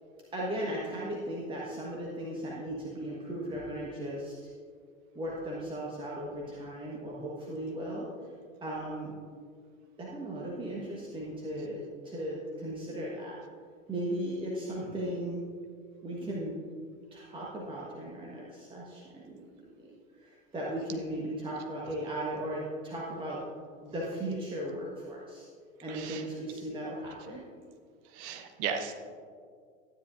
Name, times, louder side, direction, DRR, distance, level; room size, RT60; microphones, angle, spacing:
voice 1, 0.3-4.5 5.1-8.1 8.6-9.1 10.0-13.3 13.9-15.5 16.0-16.6 17.1-19.4 19.8-19.9 20.2-23.4 23.8-25.5 25.8-27.4, right 1 dB, 15° right, -5 dB, 1.4 m, -37 dB
voice 2, 25.9-26.2 28.2-28.9, right 7 dB, 40° right, 6 dB, 1.0 m, -35 dB
12.5 x 9.7 x 2.6 m, 2.1 s
figure-of-eight pair, 85°, 39 cm